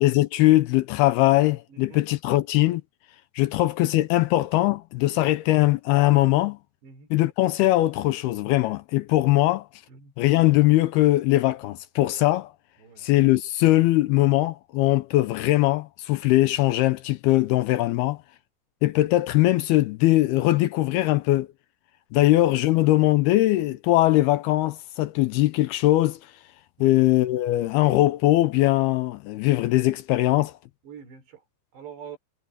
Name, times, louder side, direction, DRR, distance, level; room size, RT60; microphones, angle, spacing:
voice 1, 0.0-2.8 3.4-6.6 7.1-9.7 10.2-12.5 13.0-18.2 18.8-21.5 22.1-26.2 26.8-30.5, left 16 dB, 80° left, 2.4 m, -21 dB
voice 2, 1.7-2.0 5.1-5.3 6.8-7.1 9.9-10.1 12.8-13.1 22.2-22.3 26.8-26.9 30.8-31.4 31.7-32.2, right 7 dB, 75° right, 7.5 m, -44 dB
omnidirectional pair, 5.0 m